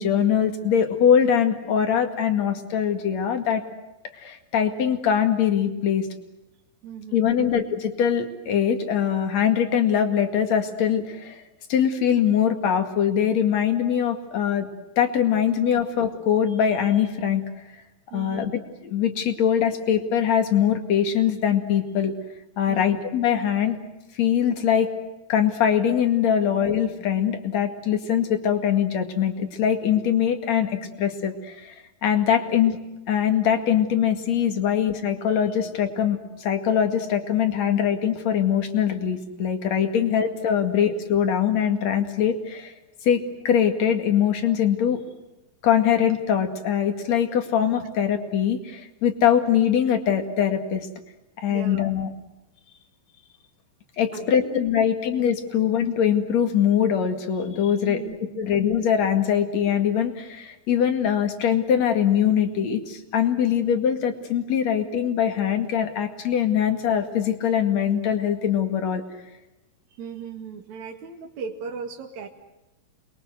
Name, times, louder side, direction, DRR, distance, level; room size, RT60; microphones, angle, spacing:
voice 1, 0.0-3.6 4.2-6.1 7.1-11.4 11.7-14.7 15.0-17.4 18.1-18.5 18.8-22.1 22.6-23.8 24.2-24.9 25.3-31.7 32.0-32.8 33.1-42.7 43.0-45.0 45.6-50.9 51.4-52.1 54.0-58.0 58.4-69.0, left 8 dB, 50° left, 7 dB, 3.1 m, -22 dB
voice 2, 6.8-7.5 12.4-12.5 15.9-16.0 18.1-18.5 22.7-23.0 34.7-34.8 40.6-40.7 51.5-51.8 54.1-54.9 57.8-58.5 64.7-64.8 69.9-72.3, right 6 dB, 55° right, 2 dB, 3.1 m, -38 dB
29.0 x 22.0 x 8.0 m, 0.96 s
omnidirectional pair, 4.1 m